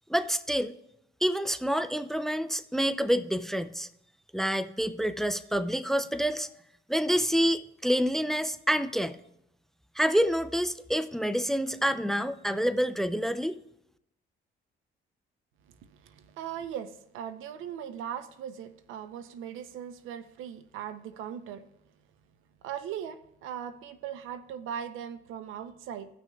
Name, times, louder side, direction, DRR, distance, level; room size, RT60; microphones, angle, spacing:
voice 1, 0.1-0.7 1.2-3.9 4.3-6.5 6.9-9.2 10.0-13.6, equal, ahead, 0.4 m, -27 dB
voice 2, 15.9-21.7 22.6-26.1, right 9 dB, 90° right, 0.6 m, -39 dB
18.0 x 6.1 x 2.3 m
cardioid pair, 90°, 20 cm